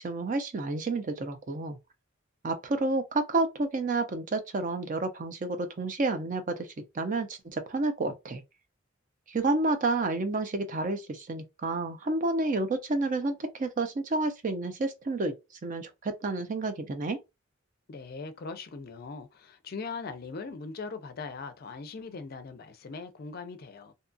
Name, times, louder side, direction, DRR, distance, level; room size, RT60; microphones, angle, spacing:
voice 1, 0.0-1.8 2.4-6.7 6.9-8.4 9.3-15.3 15.6-17.2, right 2 dB, 40° right, 0.4 m, -30 dB
voice 2, 17.9-23.9, left 4 dB, 50° left, 0.4 m, -40 dB
2.7 x 2.3 x 2.6 m
head